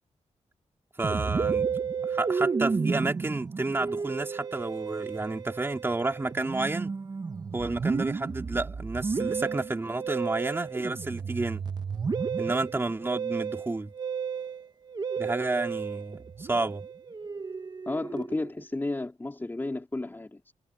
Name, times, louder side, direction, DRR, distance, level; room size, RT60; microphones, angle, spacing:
voice 1, 1.0-1.7 2.1-7.0 7.5-11.6 12.4-13.9 15.2-16.8, right 2 dB, 20° right, 2.5 m, -30 dB
Musical instrument, 1.0-18.6, right 5 dB, 35° right, 1.4 m, -32 dB
voice 2, 17.8-20.5, left 2 dB, 15° left, 3.3 m, -32 dB
wide cardioid pair, 150°, 12 cm